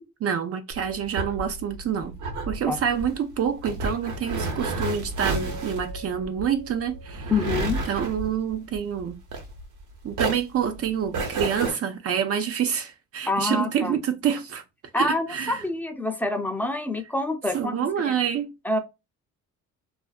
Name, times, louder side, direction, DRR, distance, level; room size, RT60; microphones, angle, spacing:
voice 1, 0.2-2.1 2.5-7.3 7.9-9.2 10.0-14.6 14.9-15.6 17.5-18.5, right 8 dB, 50° right, 0.5 m, -27 dB
sound 1, 0.7-9.8 10.1-11.7, right 3 dB, 80° right, 1.0 m, -31 dB
Mallet percussion, 5.4-8.3, right 1 dB, 85° left, 0.6 m, -44 dB
voice 2, 7.3-7.8 13.3-14.0 14.9-17.8 18.0-18.2 18.6-18.8, left 2 dB, 5° left, 0.5 m, -26 dB
2.4 x 2.2 x 2.4 m
cardioid pair, 90°, 30 cm